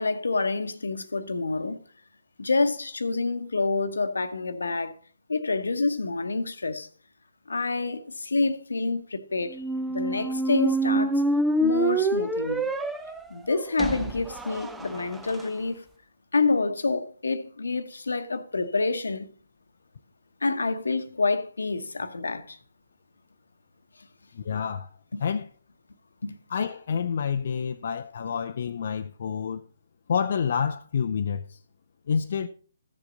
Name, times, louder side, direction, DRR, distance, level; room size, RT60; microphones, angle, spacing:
voice 1, 0.0-1.8 2.4-5.0 5.3-6.9 7.5-9.6 9.9-11.2 11.6-12.7 13.3-15.8 16.3-19.3 20.4-22.6 25.1-25.2 26.2-26.4, left 3 dB, 75° left, 1.0 m, -27 dB
sound 1, 9.5-15.4, right 2 dB, 5° right, 0.5 m, -27 dB
voice 2, 24.3-24.9 25.2-25.4 26.5-29.6 30.1-31.6 32.1-32.5, left 6 dB, 55° left, 0.5 m, -28 dB
14.0 x 7.0 x 3.9 m
figure-of-eight pair, 140°, 0 cm